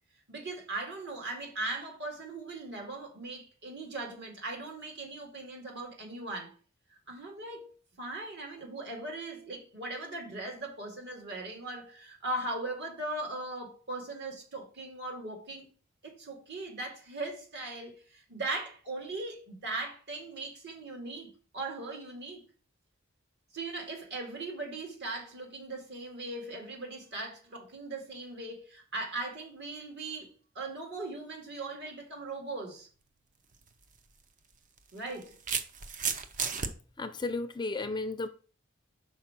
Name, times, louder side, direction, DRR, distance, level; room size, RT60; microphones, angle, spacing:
voice 1, 0.3-6.5 6.9-7.7 8.0-15.7 16.0-22.4 23.5-32.9 34.9-35.4, right 2 dB, 55° right, 2.1 m, -39 dB
sound 1, 33.5-33.7 34.8-36.7, right 6 dB, 40° right, 0.7 m, -33 dB
voice 2, 37.0-38.3, left 3 dB, 20° left, 0.5 m, -33 dB
5.6 x 4.6 x 5.9 m
head